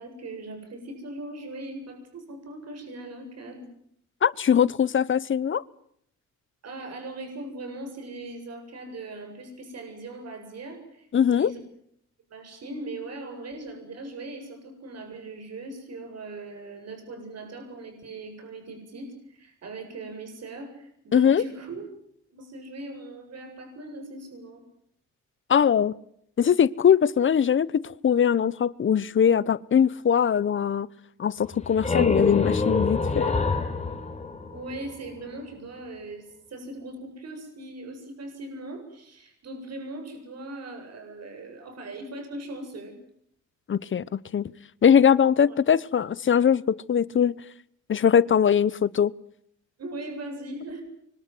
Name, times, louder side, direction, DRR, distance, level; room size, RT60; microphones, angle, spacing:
voice 1, 0.0-3.7 6.6-11.1 11.4-11.6 12.3-21.9 22.3-24.6 34.5-43.0 45.4-45.6 49.8-50.8, right 2 dB, 55° right, 8.0 m, -39 dB
voice 2, 4.2-5.6 11.1-11.5 21.1-21.4 25.5-25.9 26.4-30.9 31.2-33.3 43.7-44.5 44.8-47.4 47.9-49.1, left 8 dB, 40° left, 1.0 m, -21 dB
sound 1, 31.4-35.1, left 3 dB, 20° left, 4.1 m, -26 dB
26.0 x 24.5 x 7.9 m
cardioid pair, 90°, 30 cm